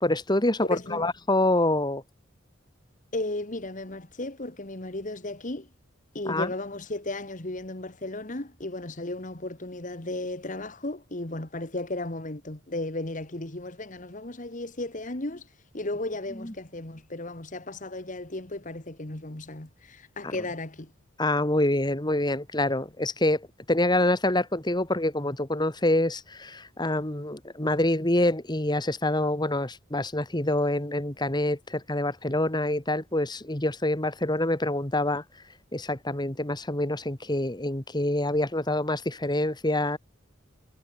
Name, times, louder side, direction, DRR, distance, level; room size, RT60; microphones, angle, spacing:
voice 1, 0.0-2.0 6.3-6.5 16.4-16.5 20.2-20.3 21.2-35.2 35.7-40.0, left 1 dB, 20° left, 2.3 m, -26 dB
voice 2, 0.6-1.1 3.1-5.7 6.1-20.9, left 2 dB, 40° left, 1.9 m, -35 dB
head